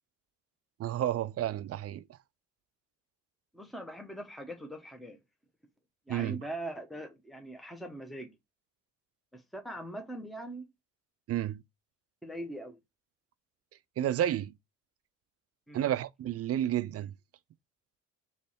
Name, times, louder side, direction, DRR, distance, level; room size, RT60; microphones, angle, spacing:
voice 1, 0.8-2.0 6.1-6.4 11.3-11.6 14.0-14.5 15.7-17.1, right 11 dB, 50° right, 0.4 m, -31 dB
voice 2, 3.5-5.2 6.1-8.4 9.3-10.7 12.2-12.8 15.7-15.8, right 1 dB, ahead, 0.9 m, -41 dB
3.3 x 3.2 x 4.1 m
cardioid pair, 90°, 30 cm